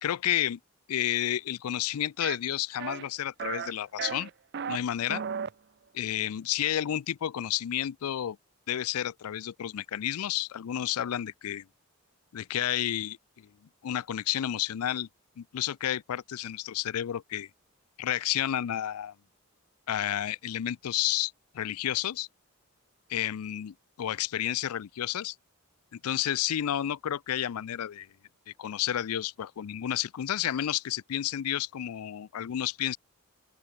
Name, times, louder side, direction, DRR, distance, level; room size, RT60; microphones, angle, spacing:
voice 1, 0.0-0.6 0.9-4.3 4.7-5.2 5.9-8.4 8.7-11.6 12.3-13.5 13.8-15.1 15.4-17.5 18.0-19.1 19.9-22.3 23.1-25.3 25.9-28.1 28.5-33.0, left 11 dB, 85° left, 0.4 m, -31 dB
sound 1, 2.2-2.4 2.8-3.1 3.4-3.7 4.0-4.8 5.1-5.5, right 7 dB, 45° right, 0.4 m, -34 dB
open air
head